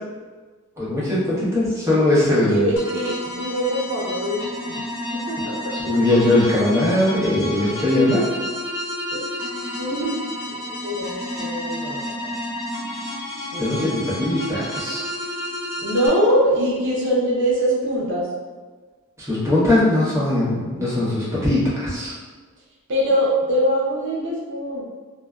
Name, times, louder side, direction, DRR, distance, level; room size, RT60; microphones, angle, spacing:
voice 1, 0.8-2.7 5.8-8.2 13.6-15.0 19.2-22.1, left 1 dB, 15° right, -10 dB, 0.9 m, -20 dB
voice 2, 2.4-5.8 9.1-9.3 9.8-10.1 10.5-12.4 13.5-14.1 15.8-18.3 22.9-24.9, equal, 60° right, -4 dB, 0.7 m, -23 dB
sound 1, 2.8-16.1, left 1 dB, 65° left, 1.0 m, -31 dB
2.6 x 2.1 x 2.3 m, 1.4 s
head